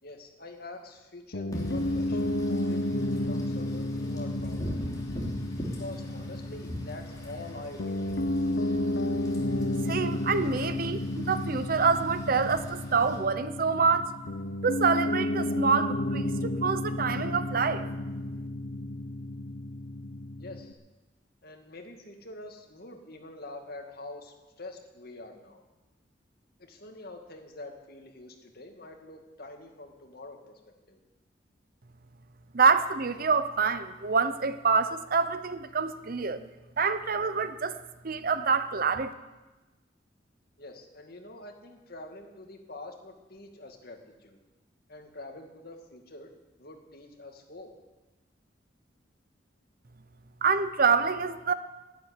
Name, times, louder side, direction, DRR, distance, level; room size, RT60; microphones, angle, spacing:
voice 1, 0.0-2.3 2.6-4.8 5.8-8.7 20.4-20.8 21.4-25.6 26.6-30.6 30.9-31.0 40.6-44.4 44.9-46.3 46.6-47.7, left 2 dB, 55° left, 3 dB, 2.2 m, -45 dB
Piano, 1.3-20.7, left 1 dB, 75° left, 0.9 m, -32 dB
Wind / Rain, 1.5-13.2, equal, 20° left, 3.2 m, -41 dB
voice 2, 9.9-14.1 14.6-17.9 32.5-36.4 36.8-37.8 38.0-39.1 50.4-51.5, right 5 dB, 50° right, 12 dB, 0.7 m, -26 dB
11.5 x 11.0 x 9.6 m, 1.1 s
head